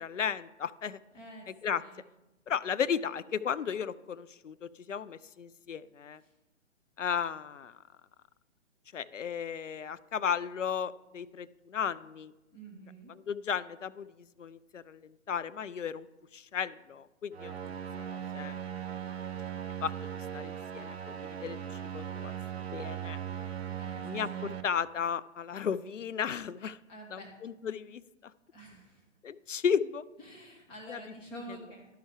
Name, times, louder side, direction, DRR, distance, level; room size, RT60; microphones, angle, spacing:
voice 1, 0.0-1.0 1.5-1.8 2.5-6.2 7.0-7.8 8.9-12.3 13.1-16.1 16.3-17.8 18.1-18.6 19.8-22.3 22.7-23.2 24.0-26.8 27.1-28.3 29.2-30.0 30.9-31.0, left 7 dB, 80° left, 15 dB, 0.5 m, -35 dB
voice 2, 1.1-1.5 1.7-2.0 12.5-13.1 23.7-24.5 26.9-27.3 28.5-29.0 30.2-31.9, right 1 dB, 15° left, -2 dB, 0.9 m, -48 dB
sound 1, 17.3-24.6, right 9 dB, 60° right, 0.8 m, -39 dB
11.5 x 5.6 x 4.9 m, 1.0 s
figure-of-eight pair, 125°, 37 cm